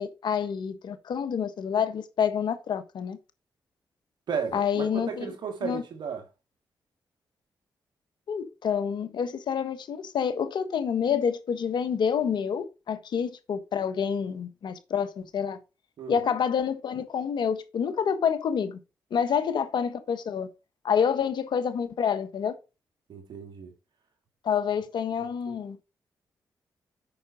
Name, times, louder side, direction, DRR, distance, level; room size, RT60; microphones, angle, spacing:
voice 1, 0.0-3.2 4.5-5.3 5.6-5.8 8.3-15.6 16.1-18.8 19.1-20.5 20.8-22.5 24.4-25.8, left 7 dB, 75° left, 1.3 m, -28 dB
voice 2, 4.3-6.2 16.0-16.2 23.1-23.7 25.2-25.5, right 6 dB, 75° right, 2.5 m, -34 dB
8.6 x 6.0 x 4.1 m
supercardioid pair, 50°, 8 cm